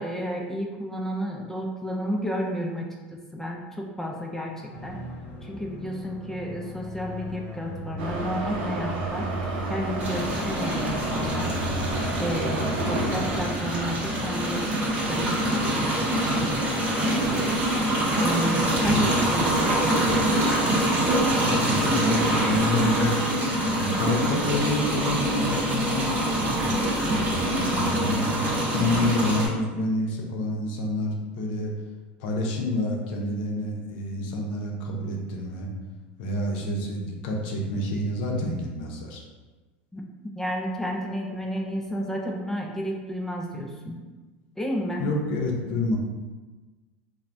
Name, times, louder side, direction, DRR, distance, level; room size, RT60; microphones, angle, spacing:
voice 1, 0.0-5.0 5.4-9.3 9.7-11.5 12.2-16.2 18.2-20.2 39.9-40.0 40.3-44.0 44.6-45.1, equal, 5° left, 0 dB, 0.3 m, -32 dB
sound 1, 4.7-15.5, equal, 35° left, 0.7 m, -36 dB
Subway metro underground, 8.0-13.5, right 2 dB, 75° right, 0.6 m, -32 dB
sound 2, 10.0-29.5, right 1 dB, 30° right, 0.8 m, -25 dB
voice 2, 21.3-23.2 23.8-26.2 26.5-28.4 28.7-31.7 32.2-35.7 36.2-39.2 45.0-46.0, left 1 dB, 75° left, 0 dB, 0.5 m, -28 dB
3.1 x 2.1 x 2.5 m, 1.3 s
supercardioid pair, 105°, 6 cm